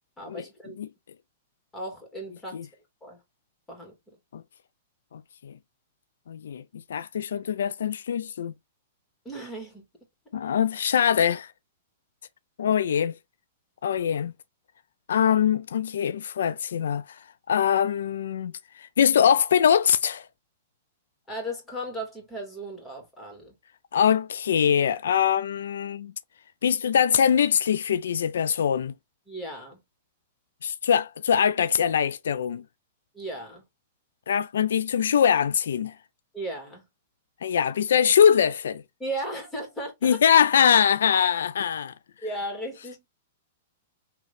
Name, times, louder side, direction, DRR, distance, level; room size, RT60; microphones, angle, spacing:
voice 1, 0.2-0.8 1.7-2.6 3.0-3.2 3.7-4.2 9.2-9.8 21.3-23.5 29.3-29.8 33.1-33.6 36.3-36.8 39.0-40.2 42.2-43.1, right 1 dB, 10° left, 2.2 m, -36 dB
voice 2, 5.1-5.5 6.3-6.6 6.9-8.5 10.3-11.5 12.6-13.1 13.8-14.3 15.1-17.2 17.5-20.3 23.9-26.1 26.6-28.9 30.6-32.6 34.3-35.9 37.4-38.8 40.0-41.9, left 8 dB, 80° left, 0.3 m, -23 dB
3.8 x 3.0 x 3.3 m
hypercardioid pair, 135°, 0 cm